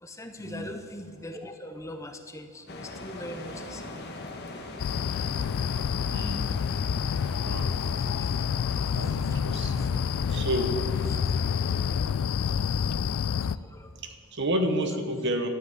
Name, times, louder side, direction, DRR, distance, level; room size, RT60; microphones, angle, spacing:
voice 1, 0.0-3.9 7.7-8.3 9.0-9.4 9.8-9.9 11.1-11.2 13.4-13.9, left 1 dB, 15° left, 6 dB, 0.7 m, -42 dB
sound 1, 2.7-12.0, left 2 dB, 50° left, 1.4 m, -42 dB
sound 2, 4.8-13.6, left 7 dB, 80° left, 0.3 m, -28 dB
voice 2, 6.1-6.5 7.4-7.7 8.9-9.9 10.3-10.8 14.0-15.5, equal, 55° right, 6 dB, 1.2 m, -30 dB
13.0 x 6.0 x 9.2 m, 2.1 s
head